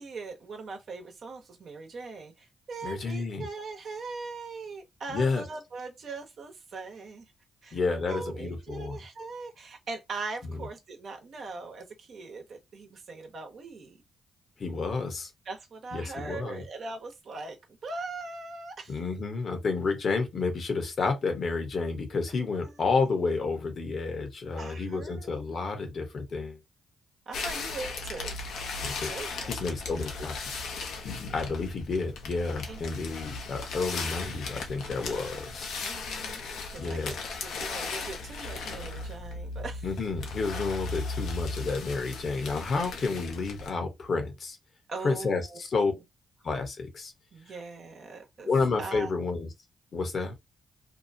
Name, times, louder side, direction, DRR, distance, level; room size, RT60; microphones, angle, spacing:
voice 1, 0.0-7.3 7.6-14.0 15.4-19.0 22.6-22.8 24.6-25.3 27.3-28.4 29.0-29.5 32.7-32.8 35.8-36.4 36.7-39.9 44.9-45.6 47.3-48.5 48.8-49.1, right 3 dB, 65° right, 0.9 m, -40 dB
voice 2, 2.8-3.5 5.1-5.4 7.7-9.0 10.5-10.6 14.6-15.3 15.9-16.6 18.9-26.6 28.8-29.1 29.5-30.4 31.0-35.7 36.8-37.2 39.8-44.6 45.0-45.9 46.4-47.1 48.4-49.5 49.9-50.3, left 4 dB, 60° left, 1.0 m, -30 dB
sound 1, 27.3-43.7, left 3 dB, 80° left, 0.7 m, -37 dB
2.7 x 2.3 x 2.7 m
supercardioid pair, 55°, 0 cm